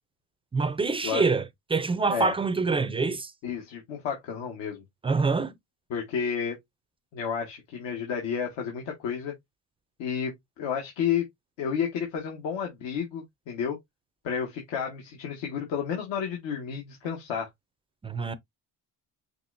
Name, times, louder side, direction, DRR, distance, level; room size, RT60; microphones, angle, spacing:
voice 1, 0.5-1.4 1.7-3.3 5.0-5.5 18.0-18.3, right 4 dB, 15° right, 0.4 m, -25 dB
voice 2, 3.4-4.8 5.9-6.6 7.1-9.3 10.0-11.2 11.6-13.8 14.2-17.5, left 7 dB, 75° left, 1.6 m, -31 dB
5.8 x 3.2 x 2.6 m
cardioid pair, 120°, 45 cm